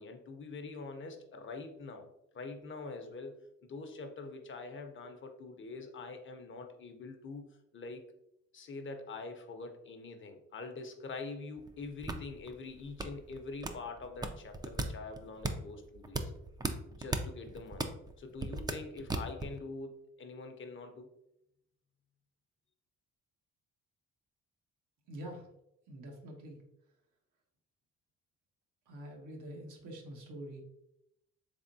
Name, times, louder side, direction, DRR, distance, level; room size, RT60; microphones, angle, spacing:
voice 1, 0.0-2.1 2.3-3.3 3.6-7.4 7.7-8.0 8.5-16.3 16.9-17.9 18.2-21.1, left 3 dB, 40° left, 5 dB, 0.6 m, -44 dB
sound 1, 11.6-19.6, right 3 dB, 15° right, 0.3 m, -38 dB
voice 2, 25.1-25.5 25.9-26.6 28.9-30.6, right 1 dB, 85° right, 1 dB, 0.9 m, -46 dB
3.5 x 3.4 x 2.6 m, 0.81 s
cardioid pair, 90°, 30 cm